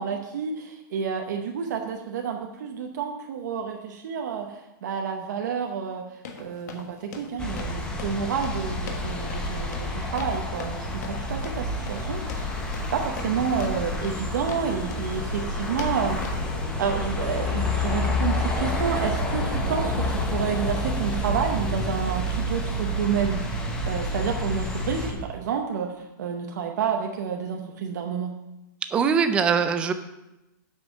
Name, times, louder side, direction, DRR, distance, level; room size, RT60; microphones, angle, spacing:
voice 1, 0.0-6.1 6.4-12.6 12.9-16.2 16.8-25.9 26.2-28.3, right 7 dB, 55° right, 3 dB, 0.9 m, -29 dB
sound 1, 6.2-16.4, left 5 dB, 55° left, 1.3 m, -42 dB
sound 2, 7.4-25.1, left 1 dB, 10° left, 0.8 m, -29 dB
voice 2, 28.9-29.9, right 6 dB, 10° right, 9 dB, 0.3 m, -22 dB
7.9 x 5.5 x 6.4 m, 0.96 s
supercardioid pair, 175°, 11 cm